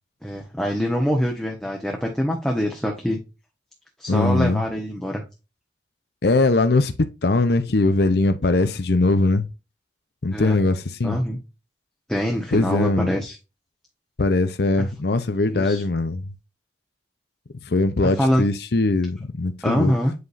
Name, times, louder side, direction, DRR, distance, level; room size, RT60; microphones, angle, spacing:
voice 1, 0.2-3.2 4.0-5.2 10.3-10.6 11.0-11.4 12.1-13.4 14.8-14.9 15.5-15.8 18.2-18.4 19.6-20.1, equal, 5° left, 1.1 m, -24 dB
voice 2, 4.1-4.6 6.2-6.9 7.2-9.5 10.2-11.2 12.5-13.1 14.2-16.3 17.6-19.9, left 2 dB, 65° left, 0.7 m, -21 dB
8.1 x 4.9 x 2.6 m
head